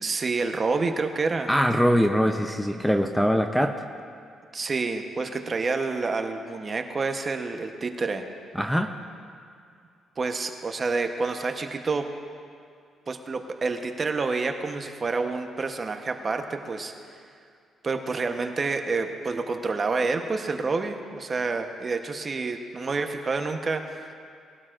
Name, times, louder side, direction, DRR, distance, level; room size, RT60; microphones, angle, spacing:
voice 1, 0.0-1.5 4.5-8.2 10.2-12.1 13.1-16.9 17.8-24.2, right 4 dB, 35° right, 5 dB, 0.9 m, -28 dB
voice 2, 1.5-3.7 8.5-8.9, equal, ahead, 5 dB, 0.6 m, -22 dB
20.0 x 12.0 x 2.5 m, 2.3 s
cardioid pair, 90°, 0 cm